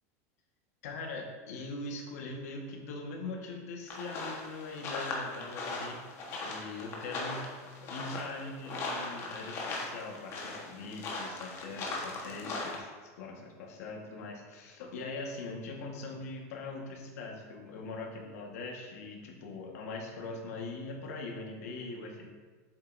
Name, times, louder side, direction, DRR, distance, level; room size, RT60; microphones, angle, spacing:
voice 1, 0.8-6.0 6.4-7.5 7.8-22.3, left 3 dB, 75° left, 1 dB, 1.4 m, -41 dB
sound 1, 3.9-12.8, left 3 dB, 30° left, 1.3 m, -39 dB
7.8 x 7.3 x 2.6 m, 1.4 s
supercardioid pair, 165°, 8 cm